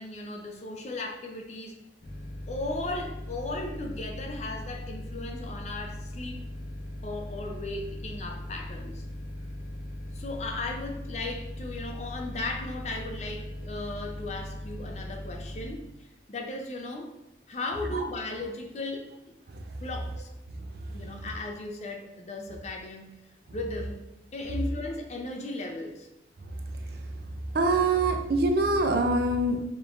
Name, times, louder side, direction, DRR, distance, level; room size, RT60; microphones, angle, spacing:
voice 1, 0.0-1.8 2.5-6.4 7.0-9.0 10.1-17.1 17.5-19.1 19.8-20.3 20.9-23.2 23.5-24.0 24.3-26.1, left 2 dB, 40° left, 4 dB, 0.4 m, -36 dB
sound 1, 2.0-15.7, left 1 dB, 55° left, 0.9 m, -39 dB
voice 2, 20.8-21.2 26.8-27.1 27.5-29.6, right 2 dB, 60° right, 5 dB, 0.5 m, -25 dB
5.0 x 3.1 x 2.4 m, 0.90 s
head